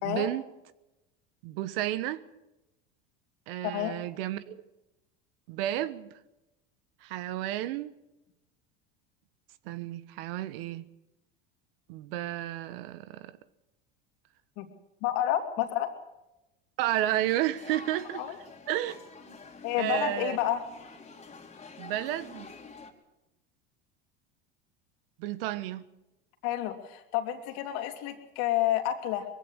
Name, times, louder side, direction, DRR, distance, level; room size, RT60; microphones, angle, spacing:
voice 1, 0.0-0.4 1.4-2.2 3.5-4.6 5.5-6.1 7.0-7.9 9.6-10.9 11.9-13.4 16.8-18.4 18.7-19.0 19.3-19.4 19.8-20.4 21.8-22.5 25.2-25.8, right 13 dB, 75° right, 1.2 m, -32 dB
voice 2, 15.0-15.9 18.2-18.3 19.6-20.6 26.4-29.2, left 12 dB, 70° left, 3.0 m, -29 dB
sound 1, 16.8-22.9, left 4 dB, 20° left, 3.1 m, -47 dB
21.5 x 16.0 x 8.1 m
hypercardioid pair, 95°, 29 cm